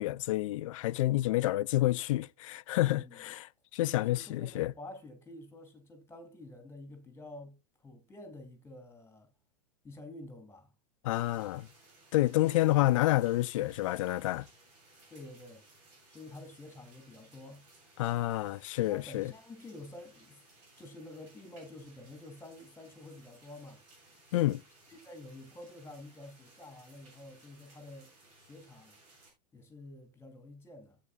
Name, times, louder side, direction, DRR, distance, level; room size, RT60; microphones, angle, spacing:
voice 1, 0.0-4.7 11.0-11.7 12.1-14.5 18.0-19.3 24.3-24.6, left 16 dB, 50° left, 0.4 m, -29 dB
voice 2, 2.9-3.3 3.9-7.5 7.8-9.3 9.8-10.7 15.1-15.6 16.1-17.6 18.8-20.4 20.8-23.8 24.9-28.1 28.4-29.0 29.5-31.0, left 2 dB, 10° left, 2.7 m, -49 dB
sound 1, 11.1-29.3, right 2 dB, 50° right, 7.5 m, -61 dB
15.0 x 8.6 x 2.3 m
figure-of-eight pair, 95°, 21 cm